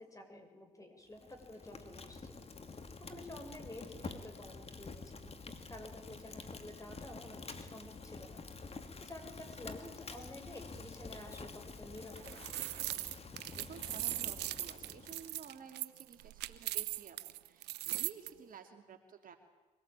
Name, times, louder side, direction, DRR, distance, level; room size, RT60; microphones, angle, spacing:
voice 1, 0.0-2.5 3.0-5.4 5.7-8.4 9.0-12.3, left 1 dB, 20° left, 4 dB, 6.7 m, -51 dB
Fire, 1.1-15.5, left 4 dB, 35° left, 2.6 m, -48 dB
sound 1, 12.0-18.3, right 17 dB, 80° right, 0.8 m, -39 dB
voice 2, 13.5-19.4, right 6 dB, 55° right, 6 dB, 2.6 m, -53 dB
24.0 x 18.5 x 9.0 m, 1.2 s
supercardioid pair, 60°, 17 cm